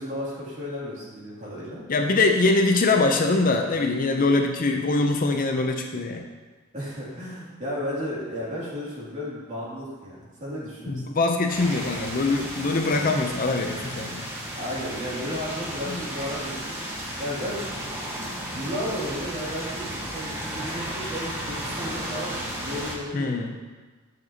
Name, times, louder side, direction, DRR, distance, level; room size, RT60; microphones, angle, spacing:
voice 1, 0.0-1.8 6.7-11.0 14.5-17.6 18.1-23.4, equal, 40° right, -7 dB, 2.6 m, -34 dB
voice 2, 1.9-6.2 10.9-14.2 15.9-16.0 23.1-23.6, left 3 dB, 45° left, 4 dB, 0.6 m, -23 dB
sound 1, 11.5-22.9, equal, 15° right, 1.3 m, -34 dB
9.5 x 6.6 x 2.8 m, 1.3 s
head